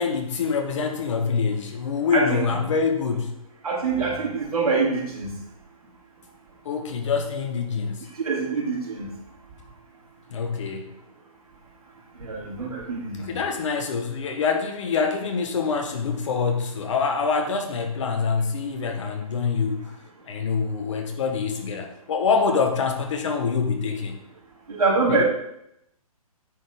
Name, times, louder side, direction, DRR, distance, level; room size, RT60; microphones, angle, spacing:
voice 1, 0.0-3.4 6.6-8.1 10.3-11.0 13.2-19.9 20.3-24.2 25.1-25.2, left 5 dB, 55° left, 4 dB, 1.4 m, -25 dB
voice 2, 3.6-5.3 8.2-9.1 12.2-13.4 24.7-25.2, right 4 dB, 75° right, -3 dB, 3.0 m, -24 dB
9.1 x 4.3 x 5.2 m, 0.80 s
figure-of-eight pair, 130°, 19 cm